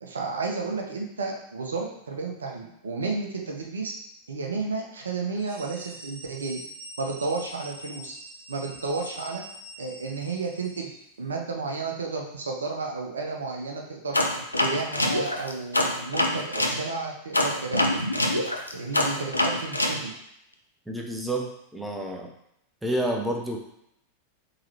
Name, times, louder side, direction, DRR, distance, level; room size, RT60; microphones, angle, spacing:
voice 1, 0.0-3.9 4.3-6.6 7.0-8.1 8.5-9.4 9.8-10.9 11.2-14.2 14.6-17.9 18.7-20.1, right 4 dB, 70° right, 1 dB, 0.6 m, -32 dB
sound 1, 5.3-11.0, right 1 dB, 35° right, 1.5 m, -44 dB
sound 2, 14.1-16.8 17.3-20.0, left 1 dB, 85° left, 0.4 m, -25 dB
voice 2, 20.9-22.3 22.8-23.6, right 1 dB, 5° right, 0 dB, 0.6 m, -29 dB
3.8 x 3.0 x 2.9 m, 0.77 s
figure-of-eight pair, 90°, 0 cm